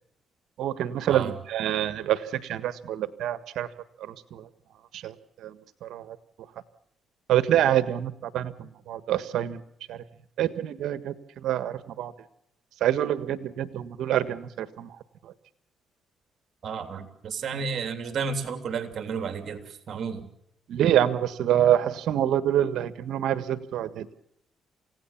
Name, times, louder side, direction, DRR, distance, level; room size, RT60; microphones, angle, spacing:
voice 1, 0.6-3.7 4.1-4.4 4.9-5.1 5.4-5.5 5.8-6.2 7.3-9.6 9.9-10.0 10.4-11.1 11.4-12.1 12.8-14.9 20.7-24.1, right 11 dB, 80° right, 13 dB, 1.5 m, -26 dB
voice 2, 16.6-20.3, right 5 dB, 55° right, 8 dB, 3.1 m, -32 dB
28.5 x 17.0 x 7.2 m, 0.76 s
cardioid pair, 90°, 0 cm